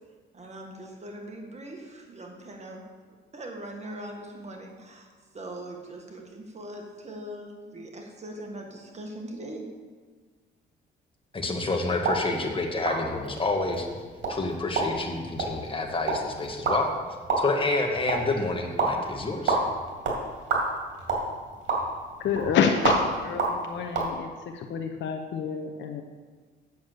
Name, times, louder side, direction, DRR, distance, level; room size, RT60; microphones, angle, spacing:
voice 1, 0.3-2.8 3.3-5.1 5.3-9.6, right 1 dB, 35° right, 1 dB, 1.7 m, -41 dB
voice 2, 11.3-13.9 14.3-16.9 17.4-19.6, left 2 dB, 25° left, 2 dB, 1.7 m, -28 dB
sound 1, 12.0-24.1, right 3 dB, 70° right, 2.4 m, -30 dB
voice 3, 22.2-26.0, left 6 dB, 70° left, 4 dB, 0.8 m, -28 dB
8.1 x 7.0 x 6.7 m, 1.5 s
cardioid pair, 90°, 20 cm